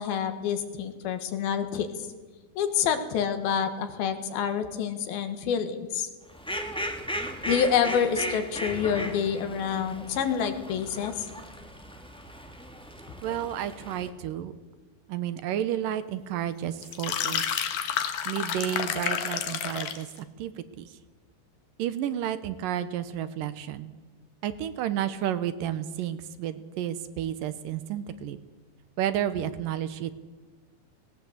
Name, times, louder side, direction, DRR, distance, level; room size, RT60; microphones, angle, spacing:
voice 1, 0.0-1.9 2.6-6.1 7.5-11.3, left 7 dB, 80° left, 8 dB, 3.4 m, -27 dB
Fowl, 6.3-14.1, equal, 5° left, 0.5 m, -37 dB
voice 2, 13.2-14.5 15.1-17.6 18.3-20.1 20.4-20.9 21.8-23.9 24.4-28.4 29.0-30.1, right 10 dB, 75° right, 13 dB, 2.4 m, -31 dB
sound 1, 16.8-20.1, left 9 dB, 65° left, 2.8 m, -30 dB
18.5 x 18.0 x 8.1 m, 1.3 s
omnidirectional pair, 4.2 m